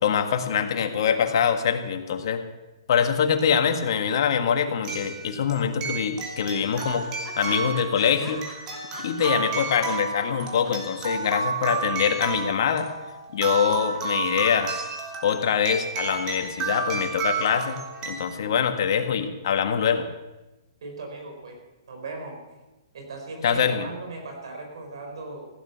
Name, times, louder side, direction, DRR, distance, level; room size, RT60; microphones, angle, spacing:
voice 1, 0.0-2.4 2.9-7.1 7.4-8.4 9.0-12.9 13.3-14.8 15.2-17.8 18.0-20.1 23.4-23.9, left 7 dB, 60° left, 6 dB, 1.7 m, -24 dB
sound 1, 3.4-3.5 4.8-18.3, right 5 dB, 25° right, 2.9 m, -31 dB
sound 2, 4.9-5.5 5.8-5.9 6.2-6.3 6.6-10.9 11.2-11.3, equal, 10° right, 4.3 m, -43 dB
voice 2, 20.8-21.6 21.9-22.4 22.9-25.5, right 3 dB, 75° right, 3 dB, 4.5 m, -37 dB
16.0 x 9.5 x 6.9 m, 1.1 s
hypercardioid pair, 145°, 3 cm